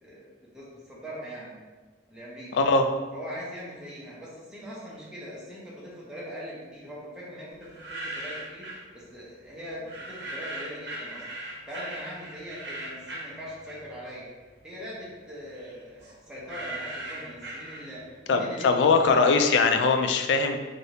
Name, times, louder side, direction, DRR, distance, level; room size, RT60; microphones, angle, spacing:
voice 1, 0.0-1.6 2.1-2.7 3.1-11.2 11.7-14.3 14.6-19.6, equal, 5° right, -7 dB, 0.6 m, -41 dB
voice 2, 2.5-2.9 18.3-20.6, left 4 dB, 80° left, 6 dB, 0.3 m, -21 dB
sound 1, 7.6-8.9 9.9-14.1 14.5-18.2, right 1 dB, 70° right, 0.7 m, -39 dB
3.2 x 2.6 x 2.7 m, 1.4 s
head